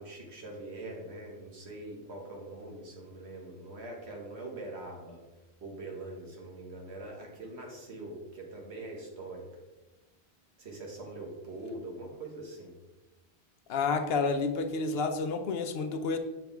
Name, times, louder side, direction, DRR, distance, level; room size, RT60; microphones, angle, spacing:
voice 1, 0.0-5.2 5.6-9.5 10.6-12.7, right 2 dB, 80° right, 0 dB, 1.8 m, -43 dB
voice 2, 13.7-16.2, left 4 dB, 70° left, 8 dB, 0.9 m, -30 dB
6.7 x 6.5 x 3.4 m, 1.1 s
omnidirectional pair, 1.1 m